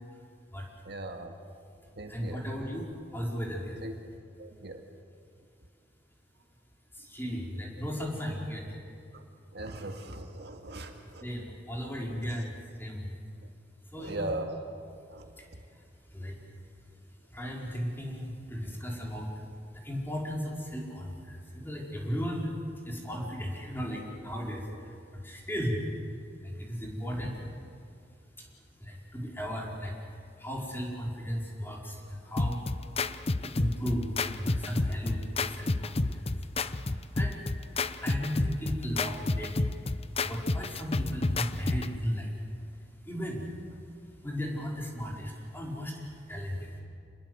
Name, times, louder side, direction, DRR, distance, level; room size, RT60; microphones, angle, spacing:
voice 1, 0.8-1.3 2.0-2.5 3.8-3.9 4.4-4.9 9.1-9.2 9.5-11.2 12.2-12.4 13.9-14.6 15.1-15.6, right 1 dB, 65° right, 4 dB, 2.1 m, -39 dB
voice 2, 2.1-3.8 7.0-8.7 11.2-13.1 13.9-14.3 15.4-15.5 16.1-16.4 17.3-19.3 19.7-22.5 22.8-24.7 25.1-25.8 26.4-27.4 28.8-30.0 30.4-32.6 33.4-36.2 37.2-37.4 38.0-39.7 40.2-42.3 43.0-43.5 44.2-46.0 46.3-46.7, equal, 10° left, -2 dB, 4.8 m, -35 dB
sound 1, 32.4-42.0, left 3 dB, 35° left, 0.7 m, -31 dB
27.5 x 21.0 x 8.0 m, 2.4 s
head